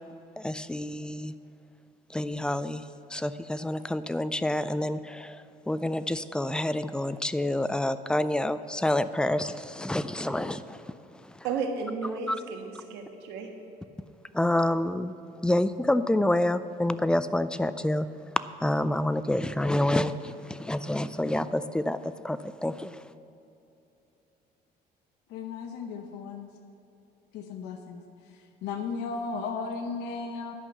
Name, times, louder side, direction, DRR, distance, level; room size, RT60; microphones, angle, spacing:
voice 1, 0.4-1.3 2.1-2.8 3.1-11.4 14.3-15.1 15.4-18.1 18.6-23.0, left 1 dB, 5° left, 13 dB, 0.3 m, -28 dB
voice 2, 11.4-13.5, right 4 dB, 90° right, 3 dB, 1.5 m, -33 dB
voice 3, 25.3-26.5 27.3-28.0 28.3-30.5, left 4 dB, 85° left, 4 dB, 0.8 m, -35 dB
11.0 x 5.5 x 7.7 m, 2.8 s
cardioid pair, 110°, 17 cm